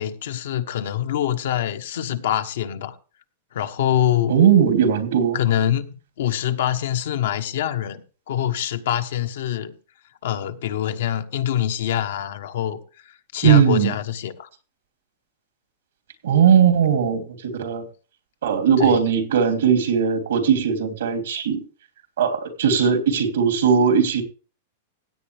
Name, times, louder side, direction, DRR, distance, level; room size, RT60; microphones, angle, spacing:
voice 1, 0.0-2.9 3.5-4.4 5.3-9.7 10.2-12.8 13.0-14.5 18.8-19.0, left 11 dB, 75° left, 1.2 m, -25 dB
voice 2, 4.3-5.4 13.4-13.9 16.2-17.8 18.4-21.6 22.2-24.2, right 7 dB, 85° right, 3.0 m, -18 dB
16.5 x 8.5 x 3.4 m
hypercardioid pair, 140°, 0 cm